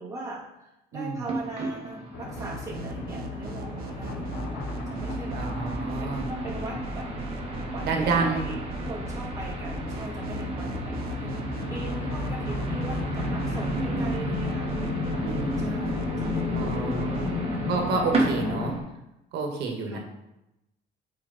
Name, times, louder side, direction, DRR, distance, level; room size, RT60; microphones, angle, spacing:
voice 1, 0.0-7.1 7.7-14.8 15.6-17.3 18.3-18.8 19.9-20.0, right 2 dB, 20° right, -5 dB, 2.7 m, -40 dB
sound 1, 1.2-18.8, right 2 dB, 35° right, 2.0 m, -34 dB
sound 2, 2.1-18.7, left 5 dB, 85° left, 0.9 m, -34 dB
sound 3, 2.4-17.3, right 3 dB, 60° right, 1.0 m, -38 dB
voice 2, 5.3-6.2 7.8-8.5 15.2-15.6 16.5-17.3 17.7-18.7 19.3-20.0, right 4 dB, 80° right, 2 dB, 1.7 m, -29 dB
8.2 x 4.9 x 4.2 m, 0.92 s
cardioid pair, 110°, 17 cm